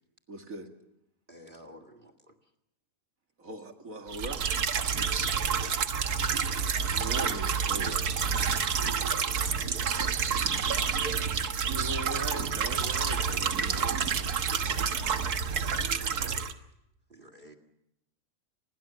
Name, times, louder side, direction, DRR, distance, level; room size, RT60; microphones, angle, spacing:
voice 1, 0.3-0.7 3.4-4.4 6.9-8.1 11.7-14.3, right 1 dB, 60° right, 4 dB, 2.6 m, -40 dB
voice 2, 1.3-2.3 4.9-5.5 9.0-10.2 16.4-16.6 17.1-17.6, equal, 35° right, 10 dB, 2.2 m, -52 dB
sound 1, 4.1-16.5, right 6 dB, 80° right, 1.8 m, -29 dB
30.0 x 22.0 x 7.0 m, 0.82 s
omnidirectional pair, 1.6 m